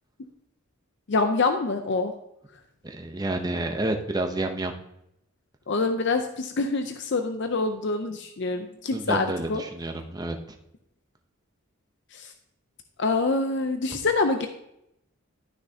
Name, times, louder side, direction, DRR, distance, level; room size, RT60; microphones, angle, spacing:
voice 1, 1.1-2.1 5.7-9.6 12.1-12.3 13.0-14.5, left 3 dB, 55° left, 7 dB, 0.5 m, -26 dB
voice 2, 2.8-4.7 8.9-10.4, right 2 dB, 20° right, 4 dB, 0.7 m, -29 dB
12.0 x 6.4 x 2.8 m, 0.81 s
head